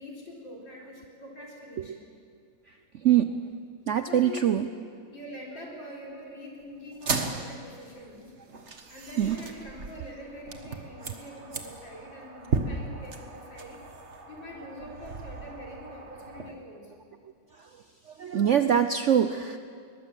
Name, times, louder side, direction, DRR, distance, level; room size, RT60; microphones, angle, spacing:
voice 1, 0.0-2.0 4.0-4.5 5.1-8.4 8.9-13.8 14.3-16.9, left 1 dB, 85° left, -2 dB, 5.2 m, -44 dB
voice 2, 3.0-3.4 3.9-4.7 9.2-9.4 18.2-19.6, right 9 dB, 65° right, 10 dB, 0.7 m, -23 dB
sound 1, 6.9-16.5, right 4 dB, 40° right, 1.7 m, -36 dB
22.0 x 20.0 x 7.7 m, 2.2 s
omnidirectional pair, 2.0 m